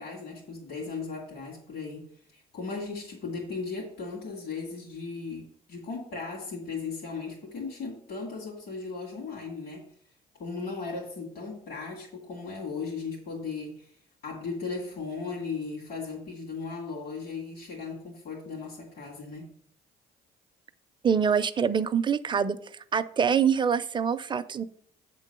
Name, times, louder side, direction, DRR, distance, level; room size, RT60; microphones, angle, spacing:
voice 1, 0.0-9.9 10.4-14.0 14.2-19.5, left 4 dB, 70° left, -3 dB, 2.3 m, -37 dB
voice 2, 21.0-22.6 22.9-24.6, right 7 dB, 30° right, 12 dB, 0.4 m, -25 dB
7.9 x 3.8 x 6.6 m, 0.63 s
cardioid pair, 110°, 17 cm